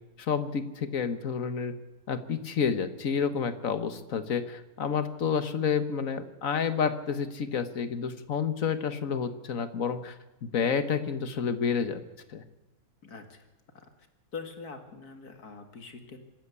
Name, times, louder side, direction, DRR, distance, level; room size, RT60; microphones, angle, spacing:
voice 1, 0.2-1.7 2.1-12.0 12.3-12.4, left 6 dB, 60° left, 12 dB, 1.7 m, -29 dB
voice 2, 13.0-13.5 13.7-13.9 14.3-16.2, left 5 dB, 80° left, 7 dB, 2.6 m, -43 dB
25.5 x 13.0 x 8.4 m, 1.0 s
omnidirectional pair, 1.6 m